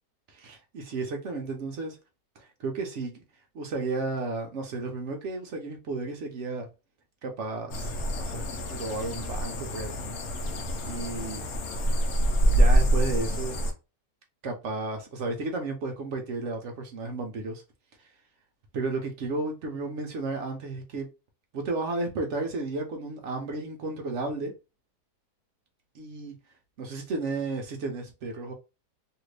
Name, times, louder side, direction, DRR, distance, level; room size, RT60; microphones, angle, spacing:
voice 1, 0.3-2.0 2.4-3.2 3.5-6.7 7.2-10.0 10.8-11.4 12.5-13.6 14.4-17.6 18.7-21.1 21.5-24.5 25.9-26.3 26.8-28.5, right 3 dB, 70° right, 0.7 m, -33 dB
sound 1, 7.7-13.7, right 1 dB, 65° left, 0.8 m, -26 dB
2.8 x 2.5 x 3.1 m
omnidirectional pair, 1.9 m